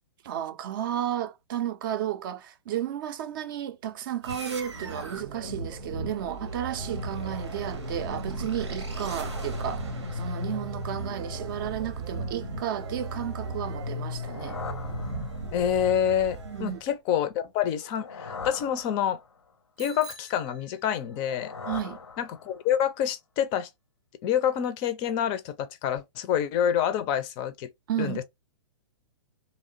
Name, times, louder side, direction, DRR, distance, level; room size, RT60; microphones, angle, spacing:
voice 1, 0.2-14.6 16.4-16.8 21.7-22.0 27.9-28.2, right 10 dB, 50° right, 0.4 m, -33 dB
sound 1, 4.2-16.9, right 1 dB, 90° right, 0.8 m, -35 dB
sound 2, 13.9-15.7 17.7-19.5 21.0-22.8, left 5 dB, 90° left, 0.6 m, -42 dB
voice 2, 15.5-19.2 19.8-21.5 22.2-23.7 24.2-27.7 28.0-28.2, left 9 dB, 30° left, 0.4 m, -27 dB
Bicycle bell, 19.8-21.3, right 2 dB, 5° right, 0.6 m, -47 dB
2.8 x 2.0 x 2.5 m
hypercardioid pair, 120°, 14 cm